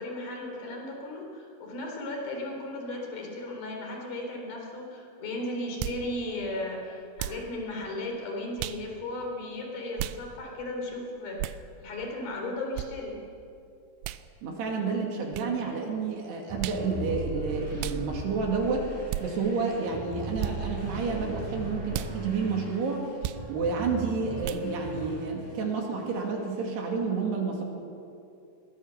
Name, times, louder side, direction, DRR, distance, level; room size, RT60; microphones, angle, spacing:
voice 1, 0.0-11.4 11.8-13.2, left 1 dB, 55° left, 1 dB, 5.4 m, -35 dB
sound 1, 5.8-6.0 7.2-7.5 8.6-8.8 10.0-10.2 11.4-11.6 12.8-12.9 14.0-14.2 15.3-15.5 16.6-16.9 17.8-18.0 19.1-19.3 20.4-20.6 21.9-22.1 23.2-23.4 24.4-24.7, right 14 dB, 90° right, 3.1 m, -34 dB
voice 2, 14.4-18.9 19.2-23.1 23.5-27.6, right 4 dB, 65° right, 1 dB, 4.3 m, -30 dB
sound 2, 16.5-25.6 26.0-26.8, right 2 dB, 5° right, 7.2 m, -39 dB
22.5 x 19.0 x 7.0 m, 2.5 s
omnidirectional pair, 5.3 m